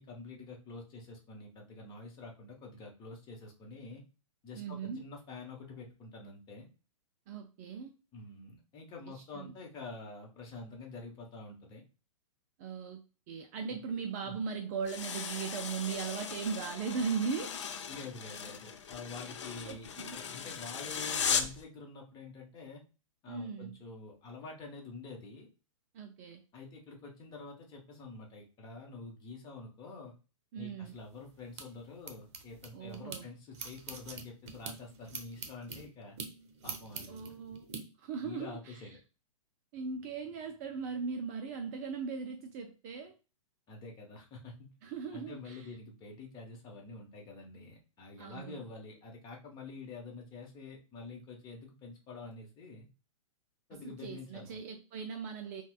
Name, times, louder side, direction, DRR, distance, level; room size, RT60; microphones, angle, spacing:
voice 1, 0.0-4.0 4.4-6.7 8.1-11.8 13.7-13.8 14.2-14.4 17.9-22.8 23.2-25.5 26.5-30.1 30.5-36.2 36.6-37.3 38.2-39.0 43.7-44.7 45.1-52.9 53.7-54.6, left 3 dB, 25° left, 1.0 m, -47 dB
voice 2, 4.5-5.1 7.3-7.9 9.1-9.5 12.6-13.0 13.3-17.6 19.7-20.2 23.3-23.8 25.9-26.4 30.5-31.0 32.7-33.3 37.1-37.7 38.0-38.9 39.7-43.1 44.8-45.7 48.2-48.6 53.7-55.6, right 5 dB, 30° right, 0.4 m, -38 dB
sound 1, 14.9-21.6, left 7 dB, 55° left, 0.5 m, -37 dB
sound 2, 30.9-33.2 33.5-37.8, right 5 dB, 55° right, 0.7 m, -45 dB
5.7 x 2.2 x 2.3 m
figure-of-eight pair, 110°, 18 cm